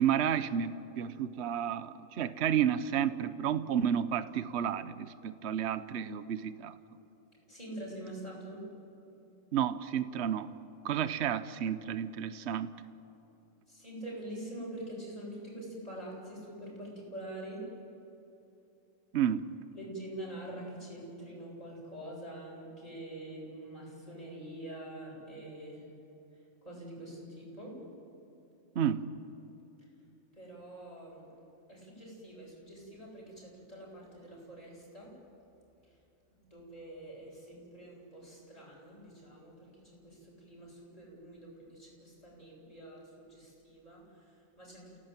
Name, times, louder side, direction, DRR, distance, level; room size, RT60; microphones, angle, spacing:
voice 1, 0.0-6.7 9.5-10.5 10.8-12.7 19.1-19.5 28.7-29.1, right 9 dB, 60° right, 13 dB, 1.1 m, -31 dB
voice 2, 7.5-8.7 13.7-17.7 19.7-25.9 26.3-27.8 29.8-29.9 30.3-31.3 31.7-35.1 35.8-36.0 36.3-45.0, right 1 dB, 30° left, -4 dB, 8.0 m, -45 dB
29.0 x 17.5 x 8.9 m, 2.9 s
omnidirectional pair, 1.3 m